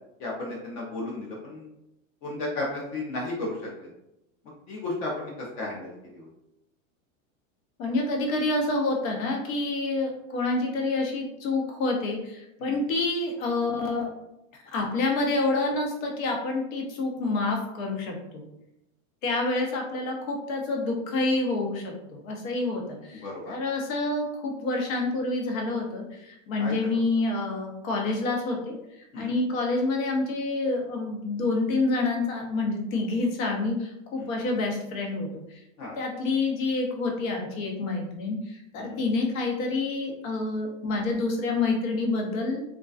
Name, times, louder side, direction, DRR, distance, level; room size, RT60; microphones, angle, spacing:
voice 1, 0.2-1.7 2.2-3.9 4.7-6.3 12.6-12.8 23.2-23.5 26.6-27.0 29.1-29.4 34.2-34.4 35.8-36.0 38.8-39.0, left 2 dB, 40° left, -3 dB, 0.5 m, -34 dB
voice 2, 7.8-14.1 14.7-18.4 19.2-35.6 36.0-42.6, left 2 dB, 80° left, 0 dB, 0.8 m, -28 dB
2.4 x 2.2 x 2.3 m, 0.86 s
supercardioid pair, 145°, 40 cm